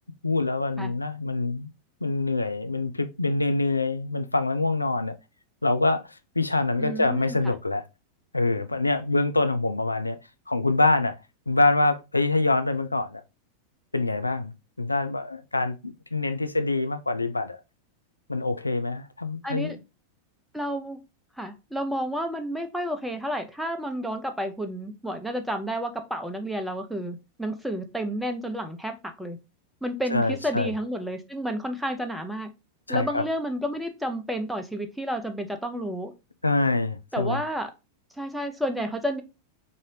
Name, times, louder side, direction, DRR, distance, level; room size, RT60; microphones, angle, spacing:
voice 1, 0.2-1.7 2.0-5.1 5.6-7.8 8.3-10.2 10.5-11.1 11.5-13.2 13.9-14.5 14.8-17.6 18.3-19.7 30.1-30.7 32.9-33.2 36.4-37.4, left 2 dB, 85° left, 0.3 m, -25 dB
voice 2, 6.8-7.4 19.4-19.8 20.5-21.0 21.4-29.4 29.8-32.5 32.9-36.1 37.1-37.7 38.2-39.2, equal, ahead, 0.5 m, -31 dB
3.7 x 2.6 x 3.2 m
figure-of-eight pair, 90°, 0 cm